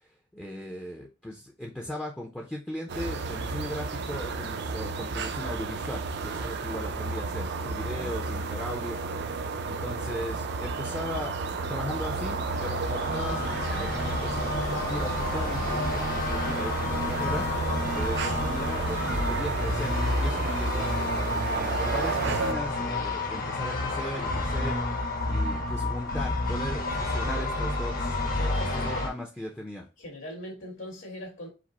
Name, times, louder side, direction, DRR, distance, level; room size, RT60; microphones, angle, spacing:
voice 1, 0.0-28.2 28.7-29.8, left 1 dB, 5° left, 0.5 m, -38 dB
sound 1, 2.9-22.5, right 4 dB, 55° right, 0.5 m, -32 dB
voice 2, 7.8-8.1 28.4-29.1 30.0-31.5, left 1 dB, 70° left, 1.8 m, -41 dB
sound 2, 11.9-29.1, left 2 dB, 45° left, 0.9 m, -30 dB
5.0 x 2.0 x 4.0 m
head